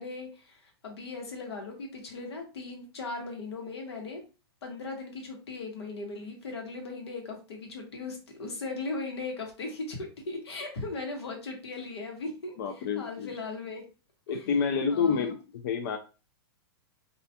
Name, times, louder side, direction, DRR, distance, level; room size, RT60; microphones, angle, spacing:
voice 1, 0.0-4.2 4.6-13.8 14.3-14.5 14.9-15.3, left 3 dB, 90° left, 2 dB, 1.0 m, -38 dB
voice 2, 12.6-13.3 14.3-16.0, left 6 dB, 55° left, 5 dB, 0.4 m, -28 dB
2.4 x 2.1 x 2.7 m, 0.33 s
hypercardioid pair, 150°, 13 cm